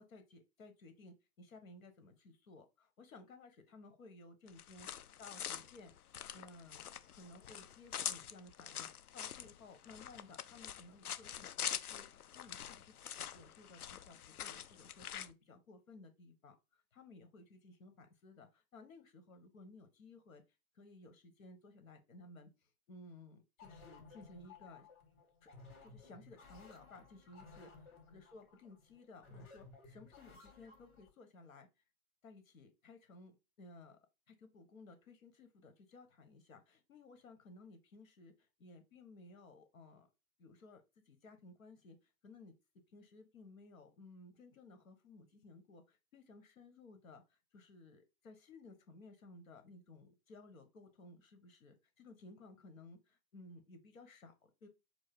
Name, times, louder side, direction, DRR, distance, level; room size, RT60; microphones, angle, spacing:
voice 1, 0.0-4.9 5.2-5.9 6.3-20.4 20.7-22.5 22.9-24.9 25.4-25.5 25.8-27.7 28.1-31.7 32.2-34.0 34.3-38.3 38.6-40.1 40.4-42.0 42.2-42.5 42.9-54.7, left 2 dB, 65° left, 1.3 m, -57 dB
sound 1, 4.5-15.3, left 9 dB, 85° left, 0.5 m, -45 dB
sound 2, 23.6-31.1, left 4 dB, 40° left, 2.3 m, -58 dB
4.6 x 2.0 x 4.4 m
figure-of-eight pair, 115°, 43 cm